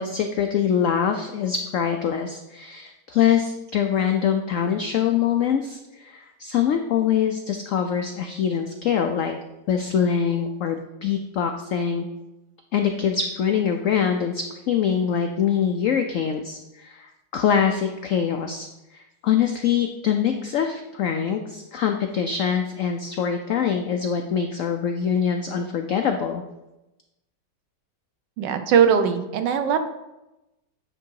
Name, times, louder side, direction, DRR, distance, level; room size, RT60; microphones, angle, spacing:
voice 1, 0.0-9.3 9.7-12.1 12.7-26.4, left 8 dB, 85° left, 5 dB, 0.7 m, -24 dB
voice 2, 28.4-29.8, right 7 dB, 80° right, 8 dB, 1.4 m, -20 dB
9.4 x 3.7 x 4.6 m, 0.97 s
omnidirectional pair, 2.0 m